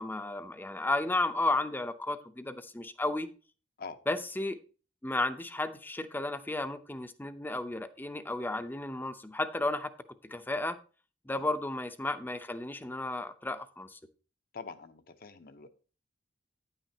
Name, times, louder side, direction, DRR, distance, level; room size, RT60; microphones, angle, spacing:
voice 1, 0.0-3.3 4.1-4.6 5.0-9.9 10.2-10.8 11.2-14.0, left 2 dB, 10° left, 10 dB, 0.6 m, -33 dB
voice 2, 14.5-15.7, left 4 dB, 55° left, 9 dB, 0.8 m, -45 dB
9.7 x 9.0 x 2.8 m, 0.36 s
head